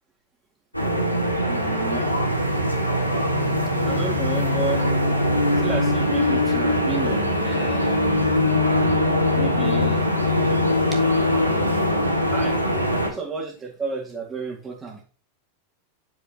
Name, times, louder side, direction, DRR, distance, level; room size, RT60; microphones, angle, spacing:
sound 1, 0.7-13.1, left 1 dB, 90° left, 1.5 m, -21 dB
voice 1, 1.5-2.1 3.8-4.9 5.6-8.0 9.3-10.1 10.9-11.0 12.3-12.6 13.0-15.0, right 4 dB, 15° right, 0 dB, 2.0 m, -32 dB
9.7 x 4.8 x 2.8 m, 0.37 s
figure-of-eight pair, 90°, 0 cm